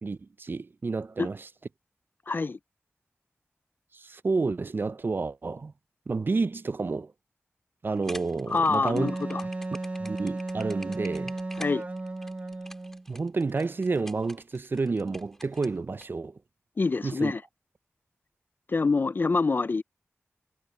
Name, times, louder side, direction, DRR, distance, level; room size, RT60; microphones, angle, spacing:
voice 1, 0.0-1.5 3.9-5.7 6.1-7.1 7.8-9.1 10.0-11.3 13.1-16.3 17.0-17.3, right 3 dB, 50° right, 0.5 m, -30 dB
voice 2, 2.3-2.6 8.5-9.4 11.6-11.8 16.8-17.4 18.7-19.8, left 4 dB, 50° left, 0.4 m, -26 dB
sound 1, 7.9-16.1, equal, 10° left, 4.0 m, -47 dB
Wind instrument woodwind instrument, 9.0-13.0, right 2 dB, 35° right, 1.1 m, -34 dB
wide cardioid pair, 85°, 5 cm